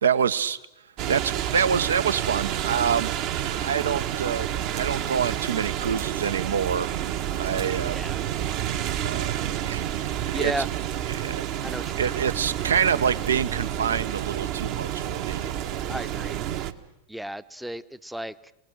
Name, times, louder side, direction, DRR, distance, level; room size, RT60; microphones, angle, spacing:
voice 1, 0.0-0.6 1.1-3.1 3.4-6.9 7.3-8.0 9.0-10.5 11.1-11.5 12.0-15.5, right 7 dB, 65° right, 15 dB, 0.8 m, -26 dB
sound 1, 1.0-16.7, right 11 dB, 40° right, 1.2 m, -29 dB
voice 2, 7.9-8.2 10.3-10.7 11.6-12.1 15.9-16.4 17.1-18.5, equal, ahead, 16 dB, 0.7 m, -34 dB
28.5 x 20.0 x 6.6 m, 0.90 s
figure-of-eight pair, 90°, 0 cm